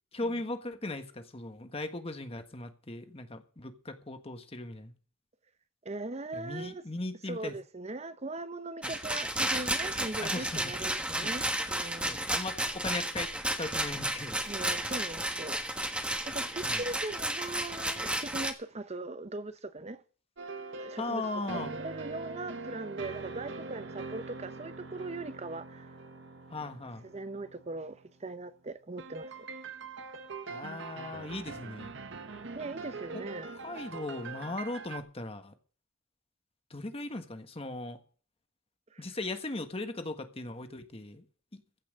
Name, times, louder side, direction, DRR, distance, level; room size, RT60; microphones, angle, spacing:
voice 1, 0.1-4.9 6.3-7.5 8.8-9.0 10.2-10.9 11.2-11.3 12.1-13.3 13.6-14.4 16.6-16.8 21.0-21.7 26.5-27.1 30.5-31.9 33.6-35.5 36.7-38.0 39.0-41.2 41.5-41.6, left 2 dB, 30° left, 1.4 m, -38 dB
voice 2, 5.8-6.8 7.3-12.3 14.5-15.6 16.2-20.0 20.8-21.2 21.5-25.9 26.6-26.7 27.1-29.3 32.5-33.5 38.9-39.0, right 2 dB, 35° right, 0.8 m, -40 dB
Rattle, 8.8-18.5, right 1 dB, 5° right, 1.3 m, -32 dB
sound 1, 20.4-28.1 29.0-35.0, right 3 dB, 65° right, 1.2 m, -43 dB
15.0 x 5.9 x 8.8 m
head